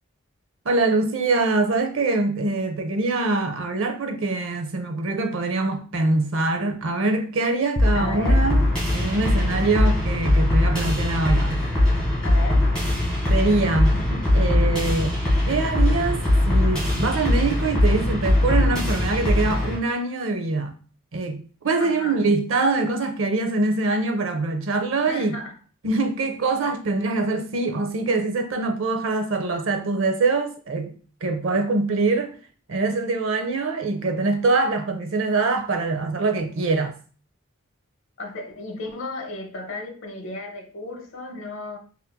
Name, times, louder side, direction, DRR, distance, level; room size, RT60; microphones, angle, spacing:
voice 1, 0.7-8.7 8.9-11.6 13.3-14.0 14.3-15.1 15.4-20.7 21.1-25.4 25.8-30.9 31.2-32.4 32.7-37.0, right 3 dB, 65° right, 0.5 m, -24 dB
sound 1, 7.8-19.8, left 1 dB, 5° left, 1.5 m, -21 dB
voice 2, 7.9-8.5 12.2-12.7 13.9-14.2 21.8-22.2 25.1-25.5 38.2-41.8, left 2 dB, 65° left, 0.7 m, -34 dB
4.1 x 2.6 x 2.2 m
head